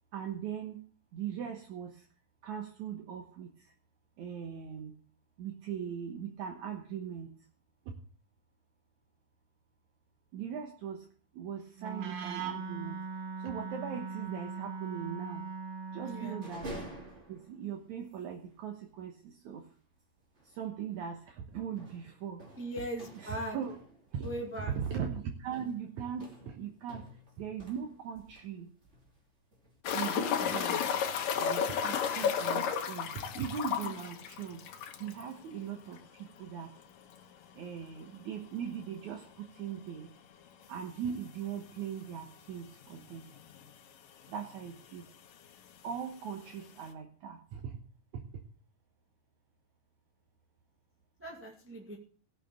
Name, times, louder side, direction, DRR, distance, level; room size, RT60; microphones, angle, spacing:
voice 1, 0.1-0.8 1.1-2.1 2.4-3.5 4.2-4.9 5.4-7.3 10.3-11.1 11.3-13.0 13.4-15.5 15.9-16.7 17.3-19.6 20.4-22.4 23.2-23.8 24.1-24.3 24.6-27.0 27.4-28.7 29.9-30.9 31.4-34.6 35.0-36.7 37.5-40.1 40.7-43.3 44.3-45.1 45.8-47.8 48.1-48.2, right 8 dB, 70° right, 3 dB, 2.4 m, -39 dB
Wind instrument woodwind instrument, 11.8-16.6, right 5 dB, 85° right, 3.1 m, -40 dB
voice 2, 16.0-16.4 22.6-23.6 24.2-24.7 51.2-52.0, right 1 dB, 5° right, -1 dB, 1.3 m, -39 dB
sound 1, 16.3-17.7 18.1-18.2 18.5-18.6 20.3-20.6 20.9-21.2 21.8-28.5 28.8-29.8, right 1 dB, 20° right, 2.6 m, -49 dB
sound 2, 29.9-35.2 35.5-35.6 36.0-36.1 38.8-38.9 40.6-40.7 41.5-41.6 41.8-41.9 42.8-42.9 43.1-43.7 44.7-44.8, left 8 dB, 85° left, 3.0 m, -32 dB
17.0 x 6.6 x 6.8 m, 0.44 s
omnidirectional pair, 3.8 m